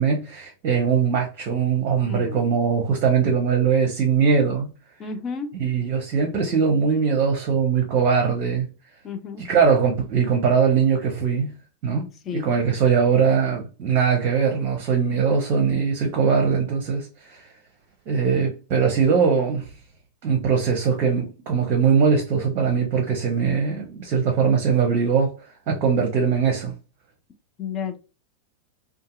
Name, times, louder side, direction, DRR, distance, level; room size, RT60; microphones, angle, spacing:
voice 1, 0.0-4.7 5.5-8.7 9.4-11.5 11.8-12.1 12.3-17.4 18.1-19.6 20.2-25.3 25.7-26.7, right 6 dB, 40° right, 0.7 m, -21 dB
voice 2, 2.0-2.5 5.0-5.5 9.0-9.4 12.3-12.5 27.6-28.0, left 5 dB, 30° left, 0.5 m, -31 dB
2.7 x 2.5 x 2.3 m
figure-of-eight pair, 90°, 0 cm